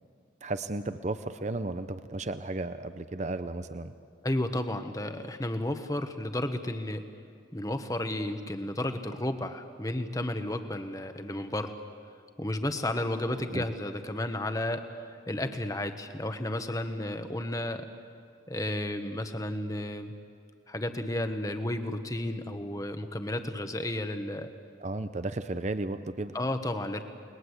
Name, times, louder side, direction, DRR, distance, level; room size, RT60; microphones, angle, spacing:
voice 1, 0.4-3.9 13.5-13.6 24.8-26.4, right 2 dB, 35° right, 11 dB, 0.7 m, -34 dB
voice 2, 4.2-7.0 7.5-11.7 12.4-14.8 15.3-17.9 18.5-20.1 20.7-24.5 26.3-27.0, left 1 dB, 15° left, 7 dB, 1.3 m, -32 dB
29.5 x 21.0 x 8.2 m, 2.2 s
head